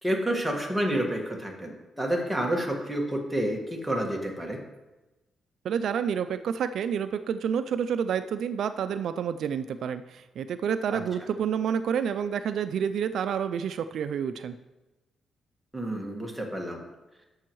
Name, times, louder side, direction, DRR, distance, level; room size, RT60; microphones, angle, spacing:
voice 1, 0.0-4.6 10.9-11.0 15.7-16.8, right 1 dB, 5° right, 0 dB, 1.6 m, -29 dB
voice 2, 5.6-14.5, right 7 dB, 70° right, 11 dB, 0.3 m, -29 dB
12.0 x 6.9 x 3.1 m, 1.1 s
cardioid pair, 105°, 0 cm